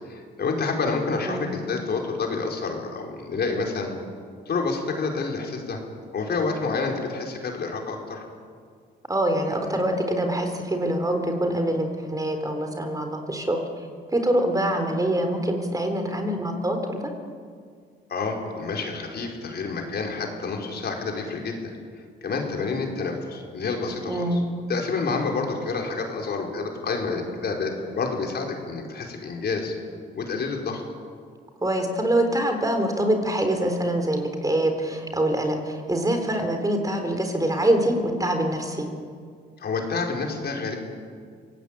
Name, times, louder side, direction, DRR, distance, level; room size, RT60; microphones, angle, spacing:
voice 1, 0.1-3.9 4.5-5.8 6.1-8.2 18.1-21.7 22.2-24.4 24.7-29.7 30.1-30.8 39.6-40.8, left 4 dB, 55° left, 1 dB, 4.9 m, -28 dB
voice 2, 9.1-13.6 14.1-17.0 24.1-24.4 31.6-38.9, right 1 dB, 15° right, 5 dB, 4.1 m, -24 dB
26.0 x 18.0 x 9.0 m, 2.1 s
cardioid pair, 90°, 20 cm